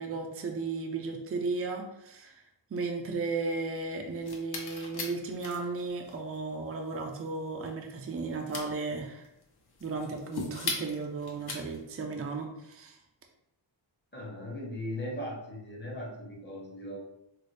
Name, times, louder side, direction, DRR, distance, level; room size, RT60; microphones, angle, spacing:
voice 1, 0.0-2.4 2.7-9.3 9.8-13.0, right 3 dB, 30° right, 2 dB, 0.5 m, -35 dB
sound 1, 4.1-12.0, left 3 dB, 55° left, 0.9 m, -40 dB
voice 2, 14.1-17.0, left 1 dB, 25° left, -2 dB, 1.1 m, -38 dB
4.0 x 2.0 x 3.3 m, 0.83 s
cardioid pair, 80°, 46 cm